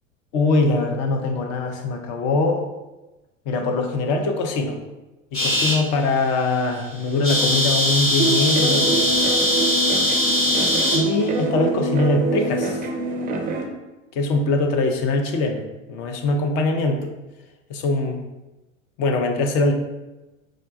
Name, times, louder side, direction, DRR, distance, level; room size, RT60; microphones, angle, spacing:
voice 1, 0.3-2.7 3.5-4.8 5.3-9.1 10.9-12.8 14.1-15.6 15.9-17.1 17.7-18.2 19.0-19.7, left 3 dB, 40° left, 3 dB, 0.6 m, -22 dB
sound 1, 5.3-5.8 6.3-6.5 6.8-6.9 7.1-11.1, left 1 dB, 85° left, 1.1 m, -21 dB
sound 2, 8.2-13.6, right 3 dB, 20° right, 0.4 m, -25 dB
4.8 x 2.2 x 2.5 m, 1.1 s
figure-of-eight pair, 85°, 40 cm